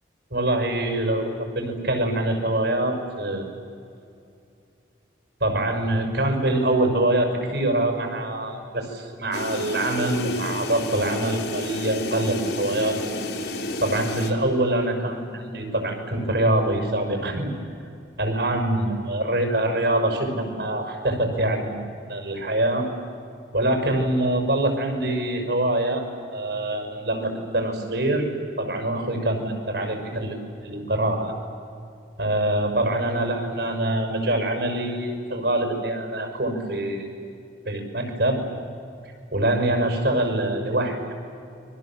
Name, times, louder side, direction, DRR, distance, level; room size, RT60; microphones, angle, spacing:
voice 1, 0.3-3.5 5.4-13.0 13.8-17.5 18.2-21.8 22.1-22.9 23.5-26.1 26.3-28.2 28.6-30.4 30.6-31.3 32.2-37.1 37.6-38.4 39.3-41.1, right 1 dB, 70° right, 4 dB, 6.3 m, -24 dB
sound 1, 9.3-14.3, left 2 dB, 75° left, 3.2 m, -31 dB
29.5 x 23.5 x 7.7 m, 2.5 s
head